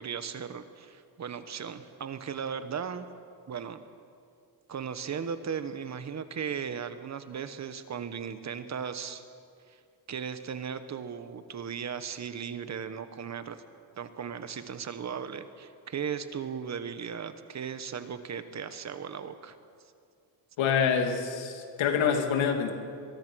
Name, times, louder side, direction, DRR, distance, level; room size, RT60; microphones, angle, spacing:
voice 1, 0.0-3.1 3.5-3.8 4.7-9.2 9.7-9.8 10.1-13.6 14.0-19.6, right 7 dB, 35° right, 10 dB, 1.2 m, -37 dB
voice 2, 20.6-22.7, left 7 dB, 85° left, 4 dB, 2.8 m, -26 dB
23.0 x 22.5 x 6.3 m, 2.4 s
cardioid pair, 155°, 46 cm